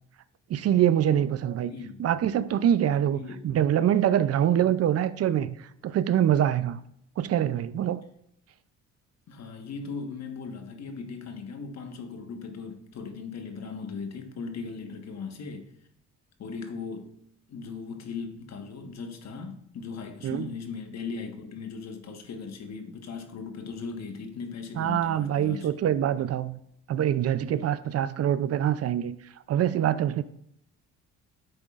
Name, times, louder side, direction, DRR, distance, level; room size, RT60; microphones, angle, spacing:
voice 1, 0.5-1.7 2.0-3.2 3.4-5.6 5.8-6.8 7.2-8.0 20.2-20.5 24.8-26.6 26.9-29.2 29.5-30.2, right 10 dB, 55° right, 0.5 m, -24 dB
voice 2, 1.6-2.1 2.9-3.5 9.3-15.7 16.4-17.1 17.5-25.8, left 5 dB, 60° left, 1.4 m, -38 dB
10.0 x 7.7 x 2.4 m
cardioid pair, 90°, 30 cm